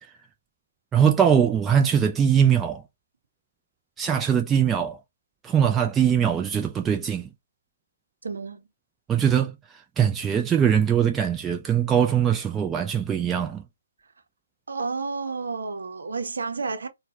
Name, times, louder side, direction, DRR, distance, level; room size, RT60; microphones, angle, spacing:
voice 1, 0.9-2.8 4.0-5.0 5.4-7.3 9.1-9.6 10.0-13.6, right 8 dB, 10° right, 0.5 m, -21 dB
voice 2, 8.2-8.6 14.7-16.9, right 4 dB, 65° right, 0.9 m, -30 dB
3.9 x 2.3 x 2.7 m
figure-of-eight pair, 140°, 0 cm